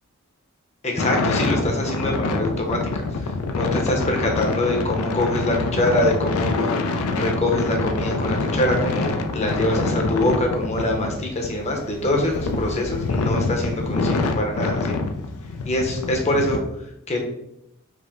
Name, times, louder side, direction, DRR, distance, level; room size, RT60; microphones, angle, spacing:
voice 1, 0.8-6.8 7.1-15.0 15.6-16.6 17.1-17.2, left 1 dB, 30° left, 1 dB, 0.8 m, -24 dB
sound 1, 1.0-16.6, left 3 dB, 85° left, 0.4 m, -26 dB
4.8 x 2.1 x 3.6 m, 0.82 s
head